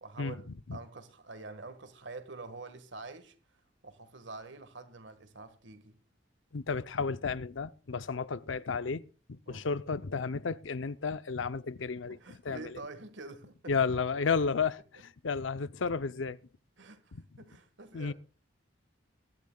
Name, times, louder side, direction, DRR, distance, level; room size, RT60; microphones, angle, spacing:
voice 1, 0.0-6.0 9.5-9.7 12.0-13.7 16.8-18.1, right 3 dB, 70° right, 1.6 m, -47 dB
voice 2, 6.5-9.0 9.3-12.2 12.4-12.8 13.7-16.4 17.1-17.2 17.9-18.1, left 5 dB, 80° left, 0.6 m, -32 dB
22.0 x 12.0 x 2.3 m
head